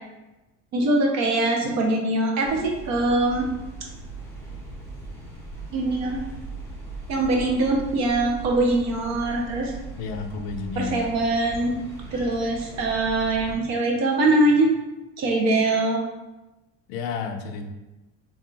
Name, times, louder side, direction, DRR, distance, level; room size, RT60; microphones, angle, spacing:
voice 1, 0.7-3.5 5.7-6.2 7.1-9.7 10.8-11.8 12.1-14.7 15.2-16.0, right 2 dB, 60° right, 1 dB, 0.7 m, -22 dB
sound 1, 2.4-13.6, right 2 dB, 10° left, 0.6 m, -39 dB
voice 2, 10.0-11.2 16.9-17.7, left 5 dB, 90° left, 6 dB, 0.5 m, -31 dB
3.5 x 2.4 x 2.3 m, 1.0 s
supercardioid pair, 115°, 32 cm